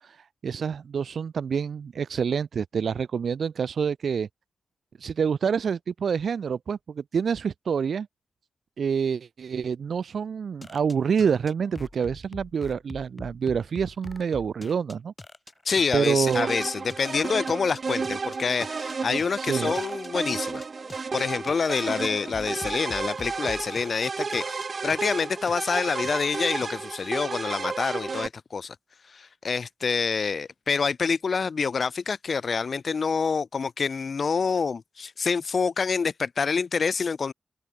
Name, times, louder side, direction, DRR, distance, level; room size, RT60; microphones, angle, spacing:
voice 1, 0.0-4.3 5.0-8.1 8.8-15.1 15.9-16.5 19.4-19.7, right 6 dB, 80° right, 1.4 m, -27 dB
sound 1, 10.6-26.7, left 2 dB, 20° left, 6.4 m, -44 dB
voice 2, 15.6-20.6 21.1-28.7 29.1-37.3, left 5 dB, 60° left, 1.2 m, -27 dB
sound 2, 16.3-28.3, right 4 dB, 50° right, 1.0 m, -32 dB
wide cardioid pair, 90°, 0 cm